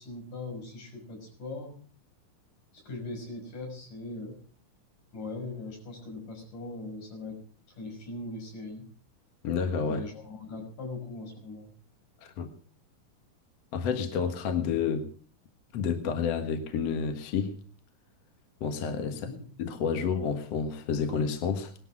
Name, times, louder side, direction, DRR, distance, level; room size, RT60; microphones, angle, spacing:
voice 1, 0.0-1.7 2.7-4.4 5.1-7.4 7.8-8.9 9.8-11.7 19.1-19.4, left 2 dB, 80° left, 2 dB, 7.4 m, -40 dB
voice 2, 9.4-10.1 12.2-12.5 13.7-15.1 15.7-17.5 18.6-19.3 19.6-21.7, left 6 dB, 55° left, 6 dB, 2.5 m, -29 dB
19.5 x 12.0 x 6.0 m, 0.43 s
omnidirectional pair, 3.7 m